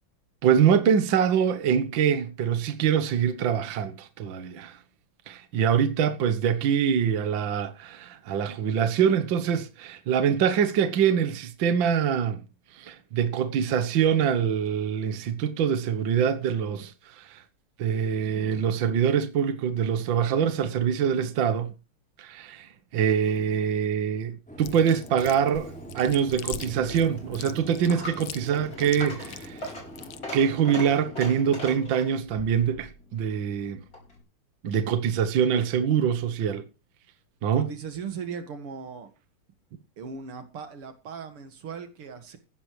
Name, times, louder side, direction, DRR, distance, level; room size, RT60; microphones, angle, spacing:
voice 1, 0.4-4.8 5.3-12.4 12.7-17.4 17.8-21.7 22.2-29.7 30.3-33.8 34.6-36.6 37.4-37.7, right 8 dB, 65° right, 1.8 m, -24 dB
sound 1, 24.5-31.8, equal, 5° left, 4.6 m, -43 dB
Chewing mastication, 24.6-30.2, left 12 dB, 80° left, 1.7 m, -41 dB
Coin (dropping), 26.8-34.2, left 1 dB, 40° left, 5.7 m, -41 dB
voice 2, 37.5-39.1 40.0-42.4, right 6 dB, 85° right, 2.8 m, -38 dB
15.5 x 12.0 x 3.2 m
omnidirectional pair, 2.4 m